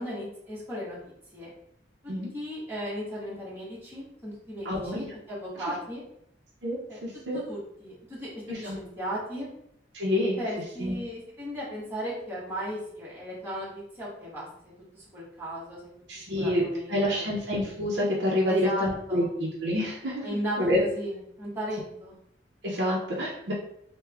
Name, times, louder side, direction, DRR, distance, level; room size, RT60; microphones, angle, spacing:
voice 1, 0.0-1.5 2.0-6.0 6.9-7.0 7.3-8.3 8.6-9.5 10.4-14.5 14.9-15.9 16.4-17.3 18.5-19.3 20.2-22.2, equal, 15° right, -8 dB, 1.3 m, -36 dB
voice 2, 4.6-5.1 6.6-7.4 8.5-8.8 9.9-10.4 10.8-11.0 16.1-20.2 20.6-20.8 22.6-23.5, left 1 dB, 75° right, -4 dB, 0.7 m, -28 dB
3.4 x 2.2 x 3.4 m, 0.74 s
head